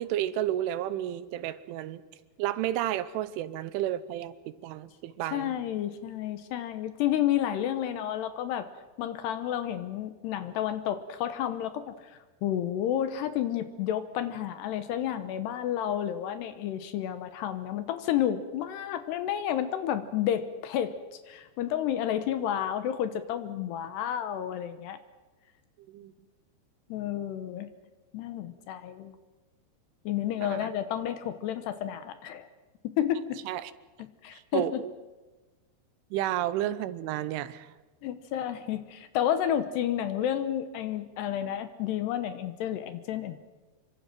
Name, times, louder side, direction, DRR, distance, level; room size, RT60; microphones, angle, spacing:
voice 1, 0.0-2.0 2.4-5.5 25.9-26.1 30.4-30.7 33.5-33.7 34.3-34.9 36.1-37.7, right 12 dB, 90° right, 14 dB, 3.4 m, -32 dB
voice 2, 5.2-8.7 9.0-25.0 26.9-27.7 28.1-29.2 30.1-32.5 33.0-33.4 34.0-34.8 38.0-43.4, left 10 dB, 75° left, 10 dB, 2.8 m, -31 dB
27.5 x 24.0 x 6.1 m, 1.2 s
omnidirectional pair, 5.4 m